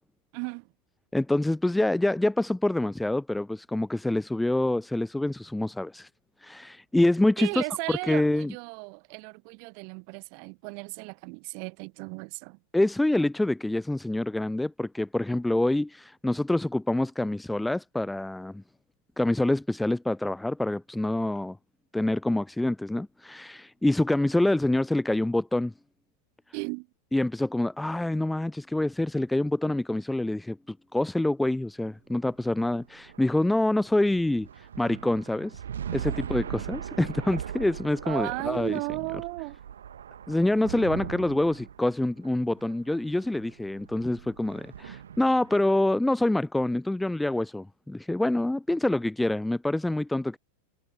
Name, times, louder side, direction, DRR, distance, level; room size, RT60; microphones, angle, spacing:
voice 1, 0.3-0.7 7.4-12.6 26.5-26.9 36.1-36.2 38.0-39.6, right 40 dB or more, 45° right, 1.0 m, -35 dB
voice 2, 1.1-6.1 6.4-7.6 8.1-8.5 12.7-18.6 19.2-21.6 21.9-25.7 27.1-34.5 34.8-35.5 35.9-38.8 40.3-50.4, left 1 dB, 5° left, 0.3 m, -26 dB
sound 1, 32.1-45.7, right 9 dB, 65° right, 1.6 m, -40 dB
figure-of-eight pair, 90°, 0 cm